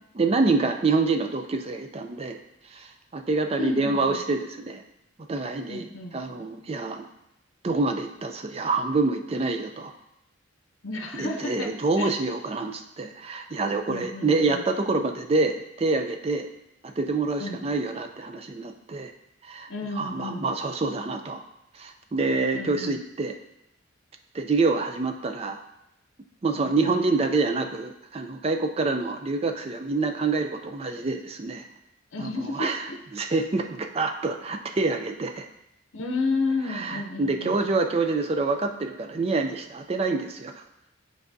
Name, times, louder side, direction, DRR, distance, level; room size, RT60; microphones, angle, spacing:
voice 1, 0.1-2.4 2.7-4.8 5.3-5.8 6.1-7.1 7.6-9.9 11.1-16.5 16.8-19.1 19.4-19.7 20.0-21.4 21.7-23.4 24.3-25.6 26.4-31.6 32.2-32.8 33.1-35.5 36.7-40.6, right 3 dB, 30° right, 5 dB, 0.4 m, -26 dB
voice 2, 3.6-4.2 5.7-6.1 10.8-12.1 13.9-14.6 17.4-17.6 19.7-20.5 22.5-23.0 26.5-27.0 32.1-33.0 35.9-37.6, left 3 dB, 75° left, 3 dB, 0.7 m, -32 dB
8.5 x 4.6 x 2.6 m, 0.85 s
head